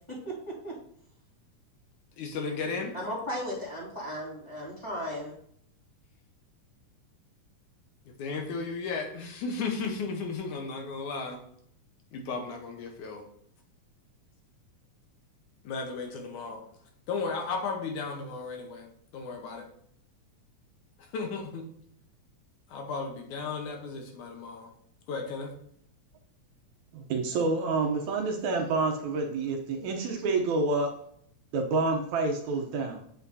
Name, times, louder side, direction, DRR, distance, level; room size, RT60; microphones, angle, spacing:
voice 1, 0.1-0.8 2.9-5.3, equal, 10° left, -7 dB, 2.2 m, -36 dB
voice 2, 2.2-2.9 8.1-11.4 12.1-13.3 15.6-16.6 17.1-19.7 21.1-21.6 22.7-24.7 25.1-25.5, left 4 dB, 75° left, 3 dB, 2.4 m, -35 dB
voice 3, 26.9-30.9 31.5-33.0, right 3 dB, 70° right, 3 dB, 2.0 m, -28 dB
8.2 x 7.9 x 2.7 m, 0.68 s
omnidirectional pair, 3.7 m